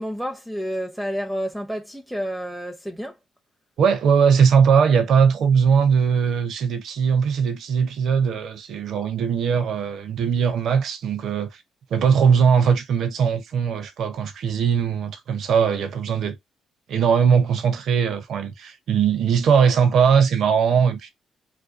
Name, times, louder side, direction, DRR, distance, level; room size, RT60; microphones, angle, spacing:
voice 1, 0.0-3.1, equal, 5° right, 0.5 m, -29 dB
voice 2, 3.8-11.5 11.9-16.4 16.9-21.1, right 6 dB, 70° right, 0.5 m, -20 dB
2.5 x 2.2 x 2.4 m
supercardioid pair, 60°, 0 cm